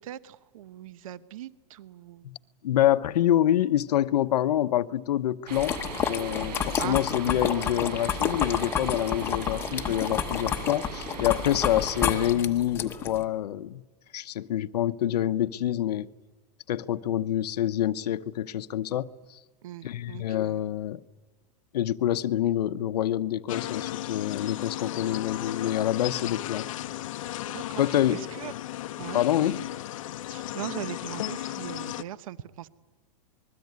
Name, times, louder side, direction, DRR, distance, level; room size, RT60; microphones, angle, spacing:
voice 1, 0.0-2.3 6.8-7.0 19.6-20.6 27.5-27.8 28.1-28.5 29.0-29.6 30.3-32.7, right 12 dB, 55° right, 0.9 m, -40 dB
voice 2, 2.6-5.8 6.1-13.8 14.1-16.1 16.7-19.4 19.8-21.0 21.7-26.7 27.8-28.2 29.1-29.6, left 12 dB, 75° left, 1.0 m, -26 dB
sound 1, 5.5-13.2, left 8 dB, 10° left, 1.0 m, -30 dB
sound 2, 5.5-12.3, right 5 dB, 80° right, 7.7 m, -39 dB
sound 3, 23.5-32.0, left 14 dB, 55° left, 0.8 m, -35 dB
27.0 x 21.0 x 9.6 m
supercardioid pair, 180°, 21 cm